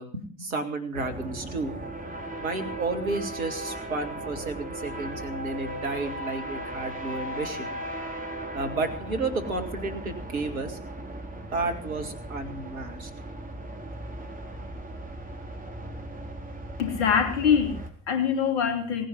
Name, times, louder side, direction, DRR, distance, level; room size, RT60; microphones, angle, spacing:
voice 1, 0.0-1.7 2.4-7.8 8.5-10.8 11.5-13.1, right 3 dB, 85° right, 5 dB, 2.1 m, -32 dB
sound 1, 0.9-17.9, right 1 dB, 20° right, 4.2 m, -37 dB
voice 2, 16.8-19.1, left 7 dB, 70° left, 6 dB, 3.2 m, -24 dB
18.0 x 10.0 x 7.2 m, 0.44 s
figure-of-eight pair, 45°, 40 cm